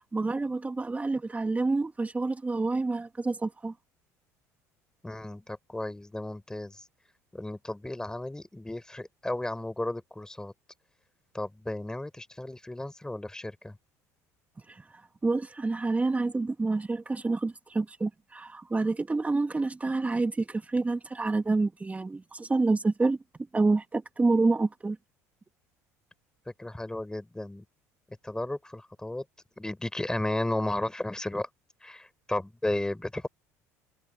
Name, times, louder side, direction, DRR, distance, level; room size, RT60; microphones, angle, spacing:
voice 1, 0.0-3.7 14.7-14.8 15.2-23.2 23.5-25.0, right 3 dB, 20° right, 2.7 m, -28 dB
voice 2, 5.0-6.9 7.3-10.5 11.3-13.8 26.6-27.6 28.2-29.2 29.6-31.5 31.8-33.3, left 1 dB, 10° left, 4.2 m, -34 dB
hypercardioid pair, 75°, 8 cm